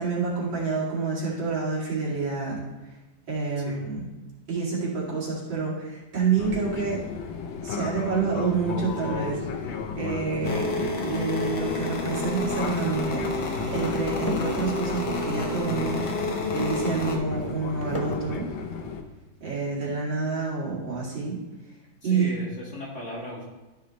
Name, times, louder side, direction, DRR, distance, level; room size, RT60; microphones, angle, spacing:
voice 1, 0.0-2.6 3.3-4.0 4.5-7.1 7.6-16.0 16.5-18.5 19.4-21.4 22.0-22.3, right 4 dB, 75° right, -6 dB, 3.2 m, -28 dB
Fixed-wing aircraft airplane, 6.4-19.0, left 5 dB, 85° left, 1.5 m, -34 dB
sound 1, 8.8-19.7, left 1 dB, 20° left, 0.4 m, -43 dB
sound 2, 10.4-17.2, left 2 dB, 65° left, 1.6 m, -30 dB
voice 2, 22.0-23.4, left 1 dB, 40° left, -6 dB, 2.5 m, -35 dB
13.0 x 5.8 x 3.1 m, 1.1 s
omnidirectional pair, 2.1 m